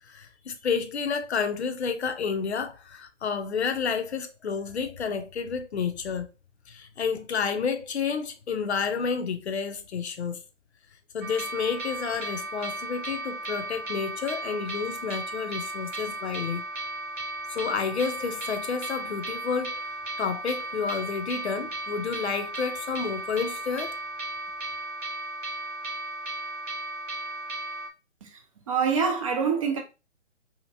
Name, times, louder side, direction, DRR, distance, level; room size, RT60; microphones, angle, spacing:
voice 1, 0.1-6.3 6.7-10.4 11.1-16.6 17.5-19.9 20.2-23.9, left 6 dB, 65° left, 0.7 m, -30 dB
sound 1, 11.2-27.9, right 1 dB, 85° right, 0.8 m, -35 dB
voice 2, 28.7-29.8, right 6 dB, 30° right, 0.6 m, -25 dB
2.8 x 2.8 x 2.7 m
figure-of-eight pair, 135°, 36 cm